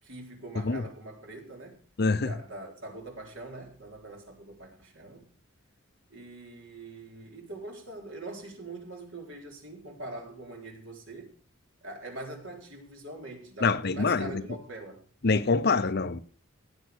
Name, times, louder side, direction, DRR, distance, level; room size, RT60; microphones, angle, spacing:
voice 1, 0.0-1.8 2.2-5.3 6.1-11.3 11.8-15.0, right 2 dB, 60° right, 4.0 m, -43 dB
voice 2, 2.0-2.3 13.6-14.4 15.2-16.2, left 4 dB, 50° left, 0.7 m, -25 dB
17.0 x 8.0 x 6.1 m
head